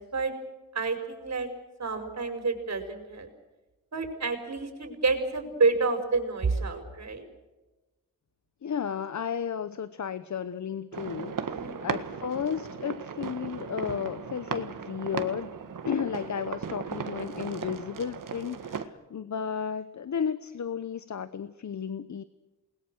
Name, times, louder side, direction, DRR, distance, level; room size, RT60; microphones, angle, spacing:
voice 1, 0.7-1.5 1.8-3.3 3.9-7.3 11.5-11.9, right 4 dB, 50° right, 6 dB, 5.6 m, -29 dB
voice 2, 8.6-15.6 15.8-22.2, left 7 dB, 60° left, 14 dB, 1.0 m, -33 dB
sound 1, 10.9-18.9, right 6 dB, 70° right, 1.8 m, -36 dB
28.5 x 21.5 x 6.5 m, 1.1 s
wide cardioid pair, 90°, 33 cm